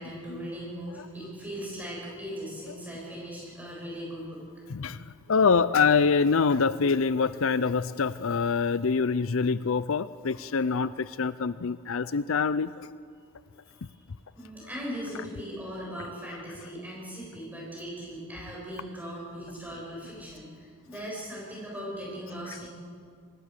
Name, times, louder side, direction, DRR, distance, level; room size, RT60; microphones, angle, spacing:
voice 1, 0.0-4.4 14.4-22.7, equal, 5° right, -5 dB, 7.9 m, -39 dB
voice 2, 4.7-12.9, left 5 dB, 65° left, 15 dB, 0.5 m, -25 dB
25.0 x 19.5 x 6.7 m, 2.1 s
head